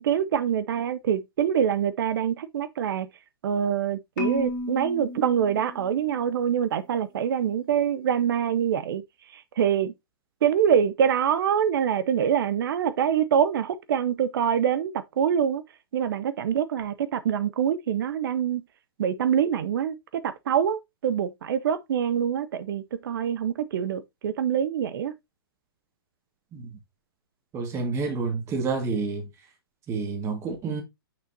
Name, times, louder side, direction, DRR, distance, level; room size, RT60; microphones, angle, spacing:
voice 1, 0.0-3.1 3.4-9.0 9.3-9.9 10.4-15.6 15.9-18.6 19.0-25.1, right 8 dB, 65° right, 0.6 m, -25 dB
Marimba xylophone, 4.2-6.4, left 2 dB, 50° left, 2.6 m, -33 dB
voice 2, 27.5-29.3 29.9-30.8, right 4 dB, 20° right, 1.8 m, -29 dB
6.2 x 5.8 x 2.7 m
hypercardioid pair, 140°, 13 cm